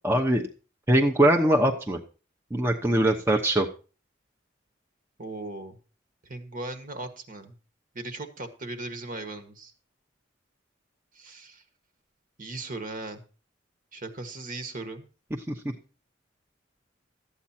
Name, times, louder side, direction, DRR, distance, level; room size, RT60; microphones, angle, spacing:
voice 1, 0.0-0.4 0.9-2.0 2.5-3.7 15.5-15.6, right 1 dB, 10° right, 1 dB, 0.9 m, -22 dB
voice 2, 5.2-5.8 6.2-7.5 7.9-9.7 11.1-11.6 12.4-13.2 13.9-15.0, right 2 dB, 45° right, 7 dB, 1.5 m, -38 dB
13.0 x 8.6 x 4.3 m, 0.35 s
head